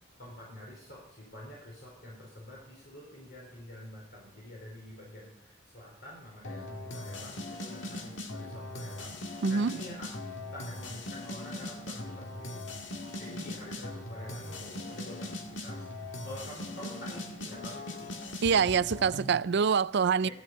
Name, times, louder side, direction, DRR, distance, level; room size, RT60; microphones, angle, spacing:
voice 1, 0.2-10.1 10.5-12.6 13.2-18.1 20.2-20.3, equal, 60° left, 4.6 m, -47 dB
sound 1, 6.4-19.4, left 1 dB, 75° left, 1.9 m, -40 dB
voice 2, 9.4-9.8 18.4-20.3, right 6 dB, 60° right, 0.5 m, -25 dB
15.5 x 13.0 x 5.6 m
head